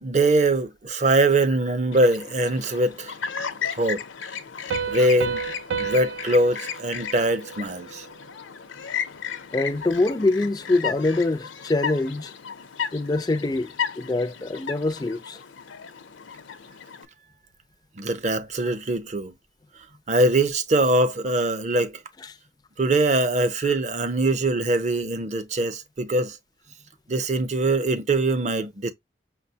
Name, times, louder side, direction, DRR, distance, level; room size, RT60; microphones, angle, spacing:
voice 1, 0.0-3.1 3.6-4.0 4.9-5.4 5.8-8.1 18.0-19.3 20.1-22.0 22.8-26.4 27.1-28.9, right 2 dB, 35° right, 0.5 m, -22 dB
Chirp tweet, 1.9-17.1, left 7 dB, 85° left, 0.7 m, -35 dB
Piano, 4.7-8.1, right 6 dB, 85° right, 0.5 m, -32 dB
voice 2, 9.5-12.3 12.9-15.4 23.6-23.7, left 2 dB, 20° left, 0.3 m, -24 dB
6.0 x 2.2 x 2.7 m
head